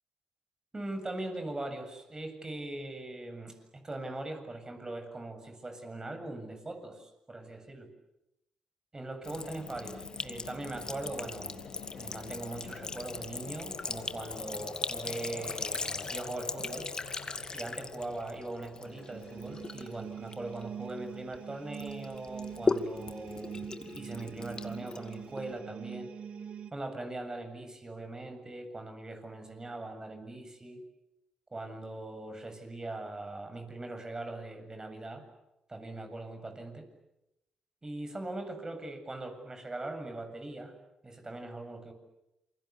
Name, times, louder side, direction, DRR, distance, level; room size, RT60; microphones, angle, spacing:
voice 1, 0.7-7.9 8.9-11.6 11.9-16.9 17.5-26.1 26.7-30.8 31.5-35.2 35.7-36.8 37.8-40.8 41.0-41.9, right 2 dB, 25° right, 7 dB, 7.7 m, -41 dB
Sink (filling or washing) / Trickle dribble, 9.2-21.4 21.7-25.6, left 3 dB, 35° left, 2.3 m, -38 dB
sound 1, 9.3-19.8, left 6 dB, 75° left, 4.7 m, -47 dB
sound 2, 18.8-26.7, right 7 dB, 60° right, 1.5 m, -44 dB
28.0 x 23.5 x 8.6 m, 0.88 s
supercardioid pair, 50°, 2 cm